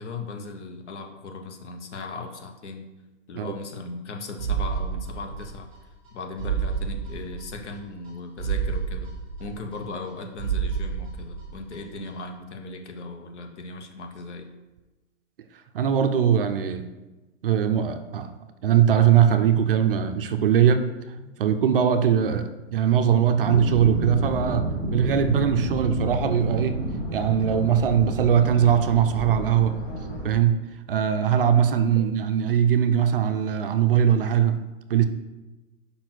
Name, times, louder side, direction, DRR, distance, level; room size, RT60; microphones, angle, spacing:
voice 1, 0.0-2.9 3.3-5.7 6.1-9.1 9.4-14.5, left 3 dB, 65° left, 5 dB, 1.2 m, -37 dB
sound 1, 4.4-5.8 6.1-6.2 6.4-7.8 8.1-8.2 8.4-10.1 10.4-11.8 12.1-12.2, right 7 dB, 5° left, 1.5 m, -29 dB
voice 2, 15.7-16.8 17.4-18.3 18.6-20.9 21.4-26.8 27.1-29.8 30.2-30.6 30.9-34.6 34.9-35.0, right 8 dB, 45° right, 8 dB, 0.6 m, -21 dB
sound 2, 23.4-30.3, right 1 dB, 40° left, 2.5 m, -29 dB
5.3 x 4.3 x 6.1 m, 1.1 s
hypercardioid pair, 160°, 38 cm